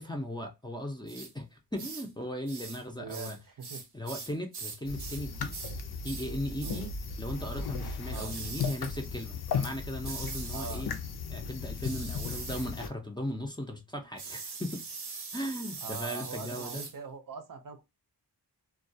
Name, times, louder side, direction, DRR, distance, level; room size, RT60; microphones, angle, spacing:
voice 1, 0.0-3.4 3.9-5.6 6.0-6.9 7.2-10.9 11.3-14.9 15.3-16.9, equal, 10° left, 0.5 m, -37 dB
sound 1, 1.1-1.3 1.8-2.1 2.5-2.8 3.1-5.3 5.5-5.8 6.0-6.3 6.6-6.9 8.1-8.8 10.0-10.8 11.8-12.7 14.2-17.0, right 4 dB, 90° right, 0.8 m, -42 dB
voice 2, 3.0-3.8 6.6-6.9 8.1-8.3 10.5-10.9 15.8-17.8, right 5 dB, 55° right, 0.6 m, -42 dB
sound 2, 4.8-12.9, left 5 dB, 70° left, 0.5 m, -36 dB
2.3 x 2.2 x 2.6 m
wide cardioid pair, 85°, 39 cm